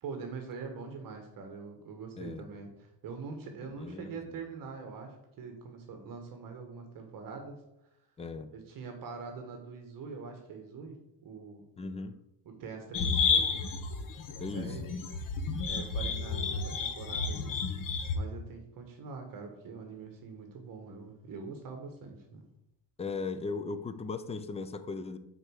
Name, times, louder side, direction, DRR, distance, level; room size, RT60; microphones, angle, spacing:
voice 1, 0.0-7.6 8.5-11.6 12.4-13.6 14.5-14.8 15.6-17.6 18.1-22.4, right 5 dB, 50° right, 4 dB, 1.3 m, -44 dB
voice 2, 2.2-2.5 3.6-4.3 8.2-8.5 11.8-12.1 14.4-14.8 23.0-25.2, left 4 dB, 15° left, 11 dB, 0.3 m, -38 dB
sound 1, 12.9-18.1, left 5 dB, 45° left, 1.1 m, -31 dB
6.5 x 4.6 x 6.3 m, 0.85 s
cardioid pair, 145°, 43 cm